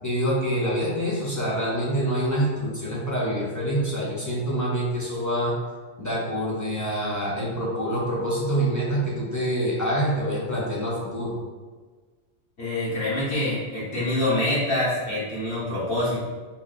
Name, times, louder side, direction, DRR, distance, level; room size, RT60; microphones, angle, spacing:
voice 1, 0.0-5.6 6.0-11.3, equal, 20° left, -6 dB, 0.6 m, -26 dB
voice 2, 12.6-16.2, left 1 dB, 55° left, -9 dB, 1.6 m, -25 dB
5.3 x 2.0 x 2.5 m, 1.4 s
omnidirectional pair, 1.3 m